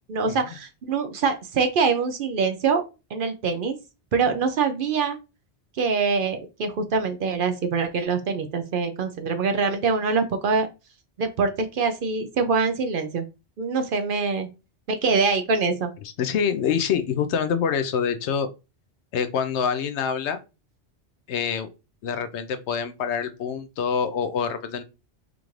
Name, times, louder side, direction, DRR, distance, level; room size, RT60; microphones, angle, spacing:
voice 1, 0.1-2.8 3.1-3.8 4.1-5.2 5.8-10.7 11.2-13.3 13.6-14.5 14.9-15.9, right 4 dB, 60° right, 7 dB, 0.6 m, -24 dB
voice 2, 16.2-18.5 19.1-20.4 21.3-21.7 22.0-24.8, left 7 dB, 85° left, 10 dB, 0.9 m, -26 dB
5.0 x 2.5 x 3.1 m, 0.29 s
omnidirectional pair, 1.1 m